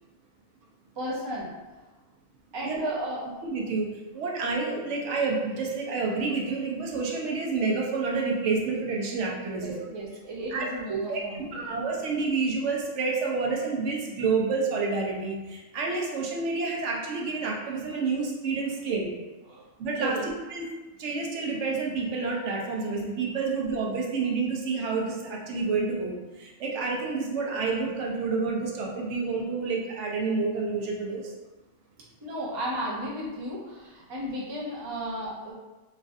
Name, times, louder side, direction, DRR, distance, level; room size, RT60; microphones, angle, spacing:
voice 1, 1.0-1.5 2.5-3.3 9.5-11.6 19.5-19.7 20.0-20.2 32.2-35.5, right 1 dB, 35° right, -5 dB, 0.5 m, -34 dB
voice 2, 3.4-3.9 4.1-9.8 10.5-11.2 11.5-19.1 19.8-20.2 20.5-20.7 21.0-31.2, right 4 dB, 75° right, -1 dB, 0.9 m, -29 dB
3.1 x 2.4 x 2.5 m, 1.2 s
omnidirectional pair, 1.2 m